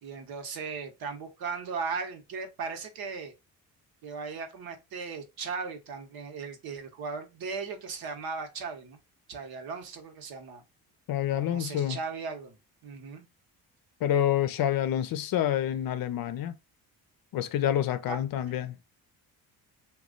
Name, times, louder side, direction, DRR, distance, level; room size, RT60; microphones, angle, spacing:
voice 1, 0.0-3.3 4.0-9.0 9.3-10.6 11.3-12.6 12.8-13.3 18.1-18.2, right 5 dB, 65° right, 1.0 m, -37 dB
voice 2, 11.1-12.0 14.0-16.5 17.3-18.8, left 11 dB, 65° left, 0.6 m, -28 dB
3.1 x 2.3 x 3.7 m
cardioid pair, 90°, 39 cm